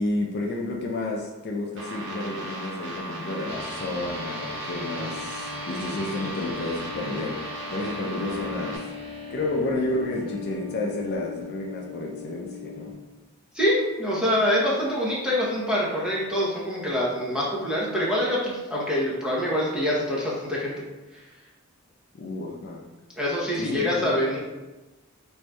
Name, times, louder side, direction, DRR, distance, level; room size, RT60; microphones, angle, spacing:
voice 1, 0.0-7.4 7.7-8.9 9.3-12.9 22.1-22.8 23.6-24.1, left 2 dB, 45° left, -1 dB, 0.4 m, -31 dB
sound 1, 1.8-8.8, right 1 dB, 55° right, 0.8 m, -37 dB
sound 2, 3.5-12.9, left 4 dB, 25° right, 0.9 m, -38 dB
voice 2, 13.5-20.7 23.2-24.4, equal, 5° right, -6 dB, 0.7 m, -25 dB
4.6 x 2.6 x 2.2 m, 1.1 s
head